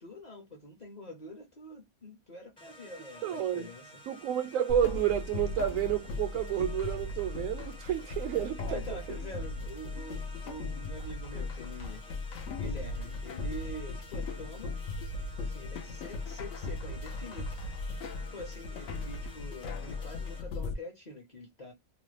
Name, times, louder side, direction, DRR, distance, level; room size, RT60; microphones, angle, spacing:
voice 1, 0.0-3.9 8.6-12.1 12.5-14.8 15.4-18.0 18.3-21.7, left 1 dB, 40° left, 0.7 m, -45 dB
sound 1, 2.6-20.4, equal, 5° left, 0.4 m, -52 dB
voice 2, 3.2-3.7 4.1-8.8 9.1-9.2, right 10 dB, 75° right, 1.0 m, -30 dB
sound 2, 4.7-20.7, left 3 dB, 65° left, 0.9 m, -38 dB
3.0 x 2.0 x 3.1 m
omnidirectional pair, 1.5 m